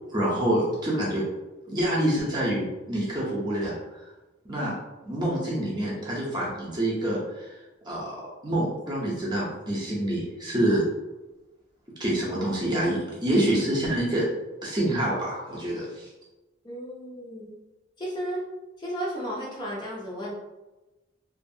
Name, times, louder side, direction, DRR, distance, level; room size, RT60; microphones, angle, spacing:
voice 1, 0.1-1.2 1.7-3.7 4.5-4.7 5.0-7.5 7.8-8.1 8.4-10.8 12.0-14.2 14.6-16.1, right 1 dB, 20° right, -5 dB, 0.7 m, -26 dB
voice 2, 16.6-17.5 18.0-18.4 18.8-20.3, equal, 20° left, -6 dB, 0.6 m, -33 dB
2.6 x 2.5 x 2.6 m, 1.1 s
head